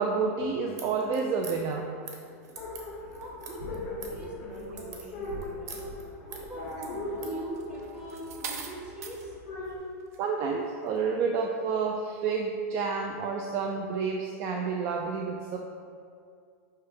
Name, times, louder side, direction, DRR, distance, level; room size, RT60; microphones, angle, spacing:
voice 1, 0.0-1.9 10.2-15.6, right 5 dB, 35° right, 1 dB, 0.4 m, -29 dB
sound 1, 0.8-7.4, right 4 dB, 90° right, 1.1 m, -46 dB
sound 2, 2.6-9.8, left 2 dB, 35° left, 1.4 m, -39 dB
voice 2, 3.2-5.8 6.2-9.4, right 1 dB, 10° right, -4 dB, 1.0 m, -42 dB
sound 3, 7.5-9.3 10.0-10.3, right 6 dB, 70° right, 0.8 m, -40 dB
5.5 x 3.4 x 5.2 m, 2.3 s
supercardioid pair, 160°, 9 cm